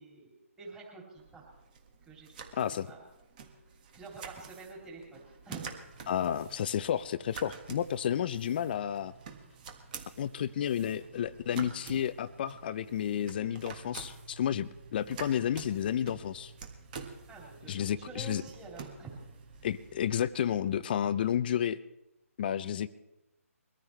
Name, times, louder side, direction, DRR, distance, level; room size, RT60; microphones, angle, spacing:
voice 1, 0.0-1.5 2.0-2.5 2.8-3.0 3.5-3.6 3.9-5.2 5.4-5.7 8.0-8.2 17.3-19.3, right 4 dB, 10° right, -4 dB, 3.2 m, -47 dB
sound 1, 1.2-20.8, right 6 dB, 35° right, 1.6 m, -49 dB
Engine, 5.1-20.8, right 3 dB, 50° right, 3.6 m, -55 dB
voice 2, 6.1-9.1 10.2-16.5 17.7-18.4 19.6-21.8 22.4-22.9, left 9 dB, 40° left, 16 dB, 0.5 m, -31 dB
22.5 x 14.0 x 3.3 m, 0.93 s
hypercardioid pair, 150°, 8 cm